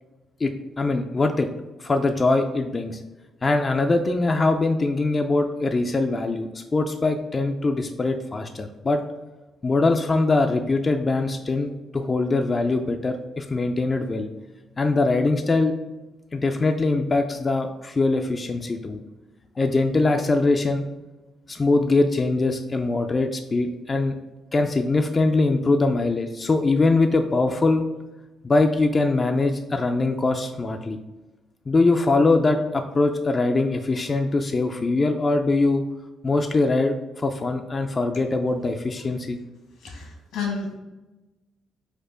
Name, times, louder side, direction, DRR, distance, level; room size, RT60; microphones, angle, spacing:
voice 1, 0.4-1.5 1.8-3.0 3.4-9.0 9.6-14.3 14.8-15.7 16.3-19.0 19.6-20.8 21.5-24.1 24.5-27.8 28.4-31.0 31.7-35.8 36.2-39.4, left 3 dB, 30° left, 5 dB, 0.4 m, -22 dB
voice 2, 39.8-40.7, left 5 dB, 90° left, 0 dB, 1.4 m, -31 dB
4.4 x 2.5 x 4.9 m, 1.1 s
cardioid pair, 90°, 0 cm